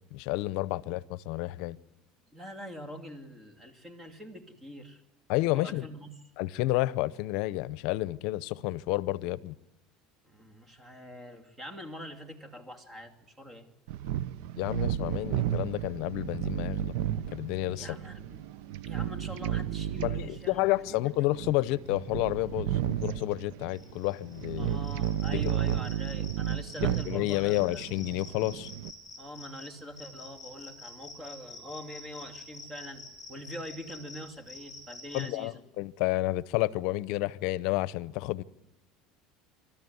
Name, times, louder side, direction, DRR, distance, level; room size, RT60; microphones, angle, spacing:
voice 1, 0.1-1.8 5.3-5.9 6.4-9.5 14.6-16.9 17.3-17.9 20.0-24.8 25.3-25.6 26.8-28.7 35.1-38.4, left 18 dB, 70° left, 0.7 m, -30 dB
voice 2, 2.3-5.0 5.5-6.1 10.2-13.7 17.8-18.4 18.8-21.0 24.6-28.0 29.2-35.6, equal, 20° right, 2.6 m, -44 dB
sound 1, 13.9-28.9, right 11 dB, 75° right, 0.7 m, -33 dB
sound 2, 23.7-35.2, left 3 dB, 5° left, 7.7 m, -48 dB
27.0 x 13.0 x 9.5 m
supercardioid pair, 115°, 0 cm